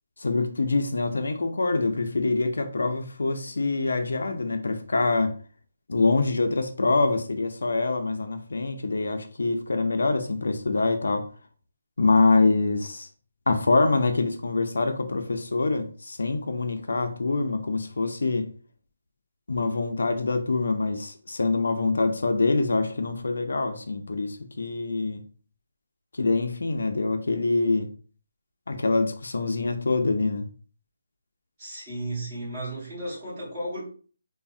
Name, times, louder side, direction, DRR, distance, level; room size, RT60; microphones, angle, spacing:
voice 1, 0.2-5.4 5.9-11.3 12.0-13.1 13.5-18.5 19.5-25.2 26.1-27.9 28.7-30.5, left 3 dB, 75° left, 0.4 m, -25 dB
voice 2, 31.6-33.8, right 1 dB, 15° right, 1.3 m, -34 dB
3.1 x 2.0 x 2.5 m
hypercardioid pair, 175°, 0 cm